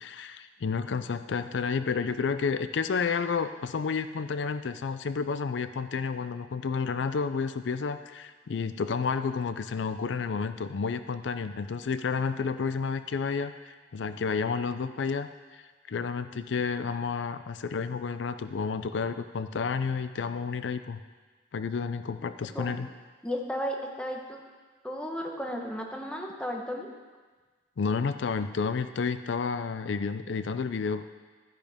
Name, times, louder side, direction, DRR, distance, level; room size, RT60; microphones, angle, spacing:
voice 1, 0.0-15.6 15.9-21.0 21.5-22.9 27.8-31.0, left 5 dB, 80° left, 11 dB, 0.4 m, -31 dB
voice 2, 23.2-24.4 24.8-26.9, equal, 5° left, 1 dB, 1.1 m, -34 dB
13.0 x 10.5 x 3.5 m, 1.4 s
head